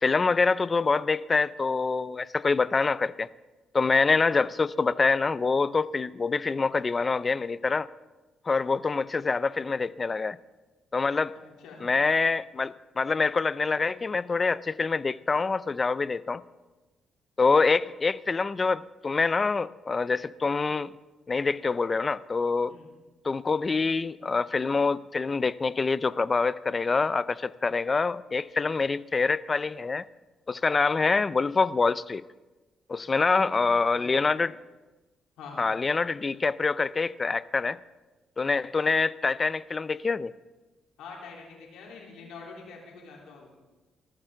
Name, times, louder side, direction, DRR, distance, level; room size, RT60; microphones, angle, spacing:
voice 1, 0.0-3.3 3.7-7.9 8.5-10.4 10.9-11.4 11.8-16.4 17.4-20.9 21.3-22.7 23.2-30.0 30.5-32.2 32.9-34.5 35.6-37.8 38.4-40.3, left 4 dB, 30° left, 18 dB, 0.4 m, -25 dB
voice 2, 11.3-11.8 22.7-22.9 33.3-33.4 33.9-34.3 35.4-35.6 41.0-43.6, left 4 dB, 85° left, -2 dB, 3.5 m, -45 dB
19.5 x 13.5 x 3.8 m, 1.2 s
cardioid pair, 90°, 0 cm